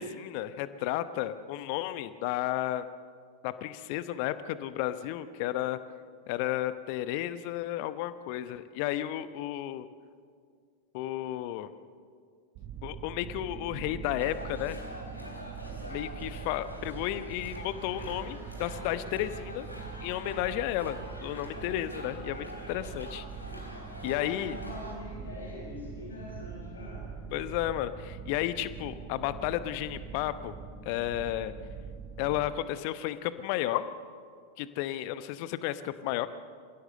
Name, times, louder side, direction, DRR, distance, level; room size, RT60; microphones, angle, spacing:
voice 1, 0.0-2.9 3.4-5.8 6.3-9.9 10.9-11.7 12.8-14.8 15.9-19.7 20.0-23.2 24.0-24.6 27.3-30.5 30.8-31.5 32.2-33.8 34.6-36.3, left 13 dB, 45° left, 13 dB, 0.9 m, -33 dB
sound 1, 12.5-32.5, right 6 dB, 40° right, 3.9 m, -43 dB
sound 2, 14.2-24.9, left 1 dB, 90° left, 3.5 m, -45 dB
sound 3, 17.8-26.4, right 3 dB, 20° right, 6.6 m, -56 dB
voice 2, 24.0-27.1, left 2 dB, 70° left, -3 dB, 7.7 m, -43 dB
28.5 x 16.0 x 6.8 m, 2.1 s
figure-of-eight pair, 90°, 0 cm